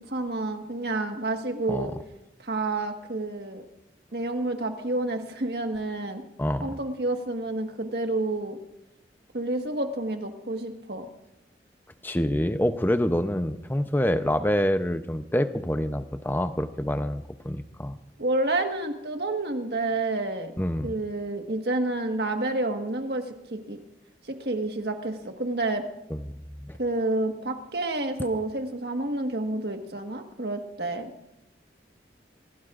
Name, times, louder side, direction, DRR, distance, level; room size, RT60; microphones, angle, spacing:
voice 1, 0.1-1.9 2.4-3.6 4.1-6.2 6.6-8.6 9.3-11.1 18.2-20.5 20.8-23.8 24.3-25.8 26.8-31.1, right 2 dB, 65° right, 5 dB, 1.6 m, -29 dB
voice 2, 6.4-6.7 12.0-18.0 20.6-20.9 26.1-26.2 26.6-26.8, equal, 10° left, 9 dB, 0.7 m, -26 dB
25.5 x 16.5 x 2.5 m, 0.90 s
head